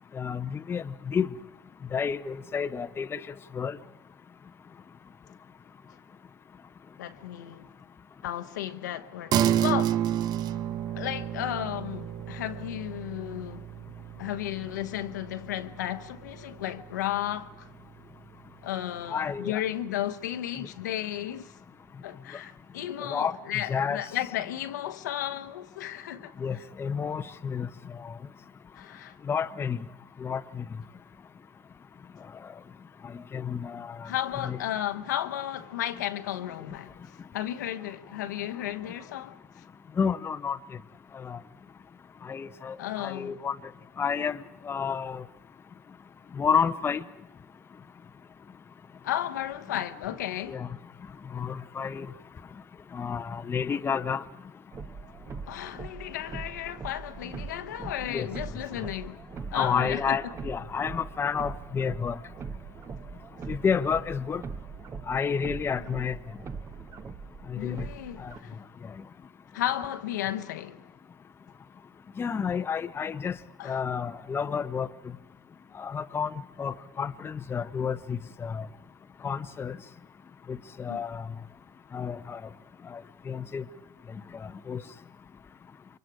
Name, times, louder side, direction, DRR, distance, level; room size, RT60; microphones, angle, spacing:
voice 1, 0.1-1.3 1.9-3.2 3.5-3.8 19.1-19.6 23.0-23.3 23.7-24.0 26.4-27.7 28.0-28.1 29.3-29.8 30.2-30.6 33.3-34.1 34.4-34.6 40.0-40.6 41.1-41.4 42.2-43.6 44.0-45.2 46.4-47.0 50.5-50.7 51.3-52.1 52.9-54.2 58.1-58.3 59.5-62.2 63.5-64.4 65.1-66.2 67.5-67.9 68.2-68.3 72.2-73.4 73.6-74.9 75.8-76.3 76.6-78.7 79.2-79.8 80.5-81.2 81.9-82.4 82.9-83.0 83.3-83.6 84.4-84.8, left 6 dB, 25° left, 0.7 m, -30 dB
voice 2, 7.0-7.7 8.2-10.0 10.9-13.6 14.2-17.7 18.6-21.5 22.0-26.3 28.7-29.2 34.0-39.6 42.8-43.4 49.0-50.6 55.5-59.2 59.5-60.2 67.6-68.6 69.5-70.8 73.6-73.8 80.9-81.0, left 12 dB, 80° left, 1.0 m, -34 dB
sound 1, 9.3-19.0, right 11 dB, 45° right, 0.7 m, -32 dB
sound 2, 54.7-68.4, right 5 dB, 30° right, 1.1 m, -41 dB
28.0 x 24.0 x 4.8 m
hypercardioid pair, 85°, 9 cm